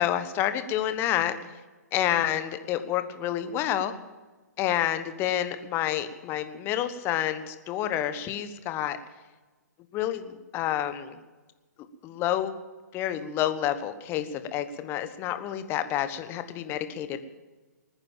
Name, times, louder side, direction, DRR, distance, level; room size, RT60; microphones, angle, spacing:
voice 1, 0.0-1.3 1.9-3.9 4.6-9.0 9.9-11.2 12.0-12.5 12.9-17.2, left 11 dB, 25° left, 10 dB, 1.2 m, -29 dB
20.5 x 9.7 x 7.3 m, 1.2 s
figure-of-eight pair, 125°, 9 cm